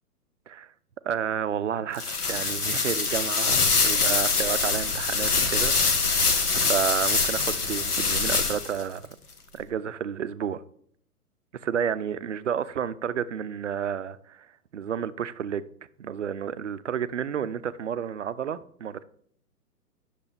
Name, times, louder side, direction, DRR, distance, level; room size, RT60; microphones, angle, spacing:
voice 1, 1.0-6.3 6.5-9.2 9.5-10.6 11.5-14.5 14.7-15.6 16.0-19.0, right 8 dB, 50° right, 0.5 m, -31 dB
sound 1, 1.9-8.8, left 4 dB, 70° left, 1.4 m, -24 dB
9.8 x 6.6 x 3.4 m
figure-of-eight pair, 125°, 47 cm